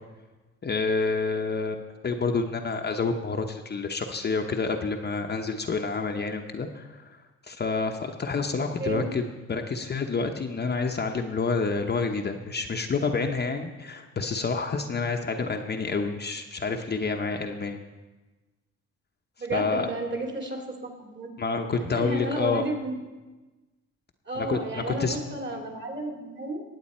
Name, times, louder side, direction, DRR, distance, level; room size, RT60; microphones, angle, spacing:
voice 1, 0.6-7.1 7.4-17.8 19.5-19.9 21.4-22.6 24.4-25.2, left 4 dB, 35° left, 3 dB, 0.9 m, -28 dB
voice 2, 8.8-9.1 19.4-21.3 21.9-22.9 24.2-26.6, right 2 dB, 35° right, 2 dB, 2.8 m, -32 dB
20.0 x 8.2 x 4.3 m, 1.2 s
cardioid pair, 90°, 30 cm